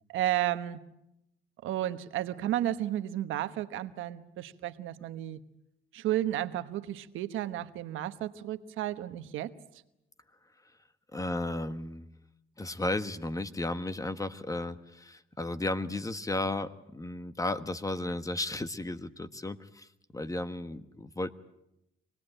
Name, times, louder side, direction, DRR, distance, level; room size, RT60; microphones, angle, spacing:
voice 1, 0.1-0.8 1.6-5.4 5.9-9.5, right 13 dB, 90° right, 10 dB, 1.2 m, -32 dB
voice 2, 11.1-12.1 12.6-21.3, left 2 dB, 15° left, 12 dB, 1.3 m, -34 dB
26.0 x 19.0 x 9.0 m, 0.86 s
cardioid pair, 90°, 20 cm